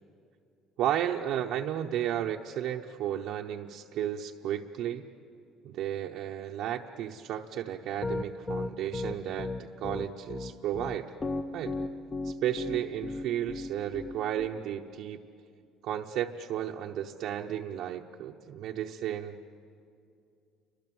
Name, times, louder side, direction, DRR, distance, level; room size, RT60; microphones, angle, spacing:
voice 1, 0.8-5.0 5.6-11.1 11.5-11.8 12.2-15.2 15.8-19.4, right 11 dB, 60° right, 0 dB, 0.9 m, -33 dB
Piano, 8.0-14.5, left 2 dB, 15° left, 0.7 m, -34 dB
30.0 x 25.0 x 7.8 m, 2.5 s
cardioid pair, 165°, 0 cm